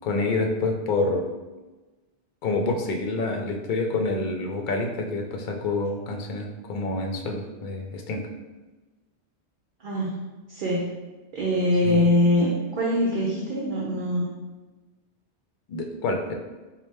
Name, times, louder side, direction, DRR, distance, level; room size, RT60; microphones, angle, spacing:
voice 1, 0.0-1.3 2.4-8.2 11.8-12.0 15.7-16.3, left 3 dB, 55° left, 3 dB, 0.5 m, -27 dB
voice 2, 9.8-10.2 10.5-10.9 11.3-14.3, left 1 dB, 55° right, -4 dB, 0.7 m, -23 dB
4.2 x 2.2 x 3.3 m, 1.2 s
omnidirectional pair, 1.2 m